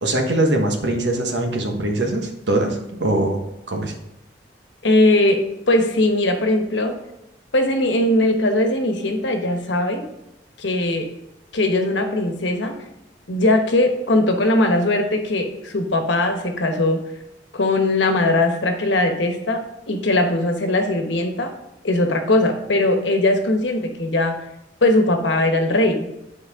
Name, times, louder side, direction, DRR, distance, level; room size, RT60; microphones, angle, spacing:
voice 1, 0.0-3.4 3.7-4.0, right 1 dB, 70° right, 2 dB, 1.3 m, -22 dB
voice 2, 4.8-5.4 5.7-7.0 7.5-10.0 10.6-11.1 11.5-12.7 13.3-17.0 17.5-19.6 19.9-21.5 21.8-24.3 24.8-26.1, left 1 dB, 85° left, 4 dB, 1.1 m, -19 dB
10.0 x 4.5 x 3.6 m, 0.89 s
head